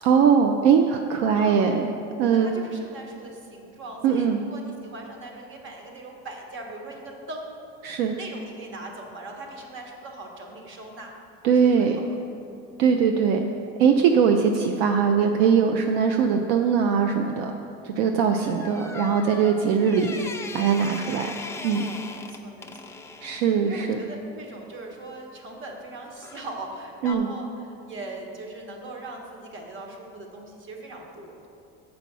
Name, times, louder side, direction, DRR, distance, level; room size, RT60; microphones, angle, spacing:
voice 1, 0.0-1.9 2.2-2.5 4.0-4.4 7.8-8.1 11.4-12.0 12.8-13.5 13.8-17.6 17.8-20.1 20.5-21.3 21.6-21.9 23.2-24.0 27.0-27.3, right 6 dB, 70° right, 4 dB, 0.5 m, -21 dB
voice 2, 2.3-7.5 8.0-11.1 11.6-12.0 18.4-18.6 19.9-20.0 22.1-22.9 23.7-31.5, right 2 dB, 40° right, 1 dB, 1.3 m, -40 dB
sound 1, 18.3-23.5 26.2-26.5 27.0-27.2, left 3 dB, 10° left, 0.3 m, -38 dB
6.9 x 5.0 x 6.0 m, 2.6 s
supercardioid pair, 115°, 31 cm